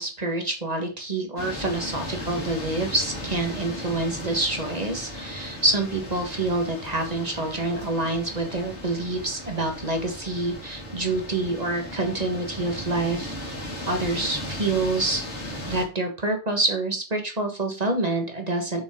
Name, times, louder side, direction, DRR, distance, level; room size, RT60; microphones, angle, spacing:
voice 1, 0.0-13.3 13.9-15.2 15.7-18.8, right 2 dB, 35° right, 3 dB, 1.7 m, -27 dB
sound 1, 1.4-15.8, left 1 dB, 85° left, 2.5 m, -36 dB
7.1 x 5.6 x 3.7 m, 0.35 s
omnidirectional pair, 1.2 m